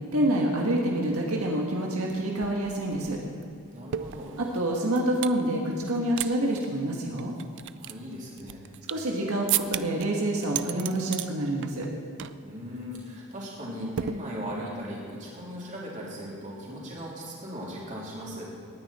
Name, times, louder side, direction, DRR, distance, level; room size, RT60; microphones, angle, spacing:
voice 1, 0.1-3.2 4.4-7.3 8.9-11.9, right 1 dB, 85° right, -1 dB, 1.6 m, -27 dB
sound 1, 2.1-2.2 2.4-5.4 5.8-6.3 6.6-6.7 7.2-9.1 9.5-10.1 10.4-11.3 11.6-11.9 12.2-12.5 12.8-13.0 14.0-14.7, right 12 dB, 55° right, 0.4 m, -34 dB
voice 2, 3.7-4.4 7.7-8.7 12.4-18.5, equal, 35° right, -5 dB, 3.3 m, -38 dB
18.5 x 9.7 x 4.3 m, 2.4 s
head